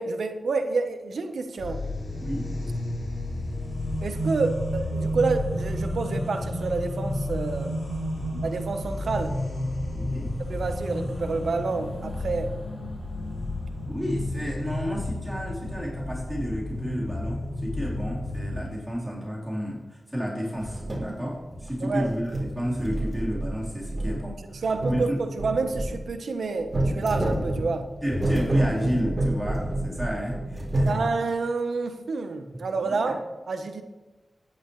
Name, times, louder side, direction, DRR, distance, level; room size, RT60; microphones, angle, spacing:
voice 1, 0.0-1.8 4.0-7.7 8.4-9.4 10.5-12.5 21.8-22.1 24.6-27.9 30.8-33.2 33.5-33.8, right 4 dB, 85° right, 6 dB, 1.1 m, -28 dB
sound 1, 1.6-18.6, left 1 dB, 70° left, 3.9 m, -31 dB
voice 2, 2.2-2.5 8.2-8.5 9.9-10.3 13.9-25.2 28.0-31.1 32.5-33.0, equal, 5° right, -6 dB, 4.0 m, -31 dB
sound 2, 20.5-21.1 21.5-22.0 22.3-26.0 26.7-30.9, right 1 dB, 30° right, 3.7 m, -28 dB
14.0 x 10.5 x 3.3 m, 1.1 s
wide cardioid pair, 70°, 0 cm